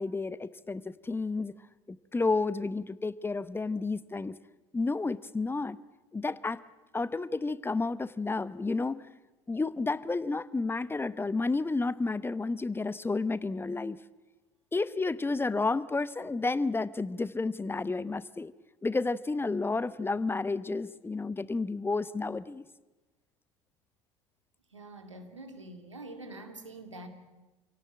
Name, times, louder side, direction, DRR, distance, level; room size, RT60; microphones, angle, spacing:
voice 1, 0.0-1.5 1.9-4.3 4.7-5.8 6.1-6.6 6.9-9.1 9.5-14.0 14.7-18.5 18.8-22.6, left 3 dB, 15° left, 17 dB, 0.9 m, -31 dB
voice 2, 24.7-27.1, right 2 dB, 90° right, 7 dB, 2.3 m, -45 dB
27.5 x 17.5 x 8.9 m, 1.1 s
figure-of-eight pair, 65°, 15 cm